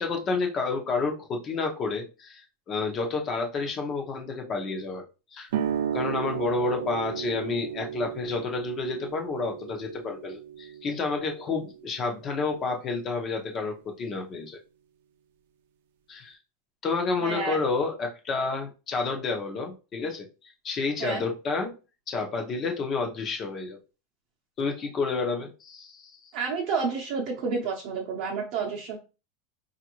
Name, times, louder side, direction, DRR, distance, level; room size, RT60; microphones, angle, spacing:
voice 1, 0.0-5.0 5.3-5.5 5.9-14.6 16.1-16.4 16.8-21.7 22.1-23.8 24.6-26.3, left 4 dB, 25° left, 3 dB, 0.8 m, -30 dB
sound 1, 5.5-12.7, right 9 dB, 75° right, 0.5 m, -34 dB
voice 2, 17.2-17.6 21.0-21.2 26.3-29.0, right 5 dB, 45° right, -2 dB, 0.8 m, -30 dB
5.0 x 2.5 x 3.0 m, 0.32 s
supercardioid pair, 170°, 0 cm